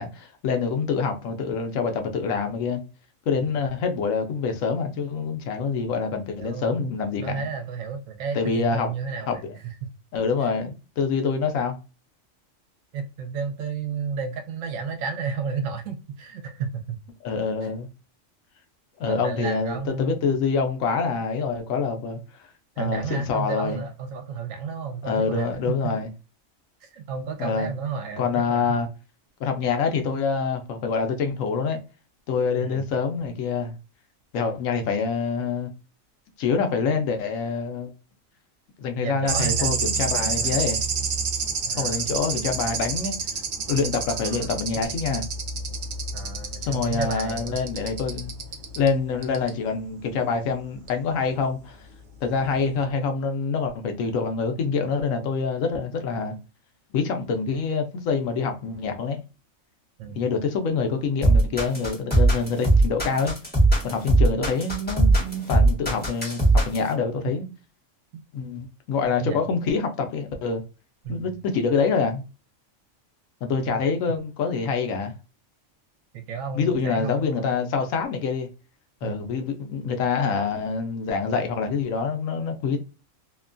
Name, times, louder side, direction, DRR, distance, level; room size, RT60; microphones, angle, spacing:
voice 1, 0.0-2.8 3.3-7.4 8.3-8.9 9.3-9.6 10.1-11.8 17.2-17.9 19.0-22.2 22.8-23.8 25.0-26.1 27.4-27.7 28.2-28.9 29.4-31.8 32.3-33.7 34.3-35.7 36.4-37.9 38.8-40.8 41.8-43.1 43.7-45.3 46.6-48.3 48.8-51.9 52.2-56.4 56.9-59.2 60.1-63.3 63.8-67.5 68.3-70.6 71.1-72.2 73.4-75.1 76.5-78.5 79.0-82.8, left 5 dB, 85° left, 1.0 m, -26 dB
voice 2, 6.4-6.9 7.2-9.7 10.4-10.5 12.9-17.0 17.6-17.7 19.0-20.3 22.8-25.9 26.8-28.8 32.6-32.9 39.0-39.8 40.2-40.6 41.6-42.1 46.1-47.6 60.0-60.2 68.1-68.2 69.2-69.4 71.0-71.4 76.1-77.7 79.0-79.2, right 6 dB, 80° right, 1.0 m, -32 dB
sound 1, 39.3-48.9 49.2-49.5 50.9-51.0, right 5 dB, 60° right, 0.5 m, -29 dB
sound 2, 61.2-66.9, right 2 dB, 10° left, 1.0 m, -19 dB
2.8 x 2.2 x 2.4 m
omnidirectional pair, 1.4 m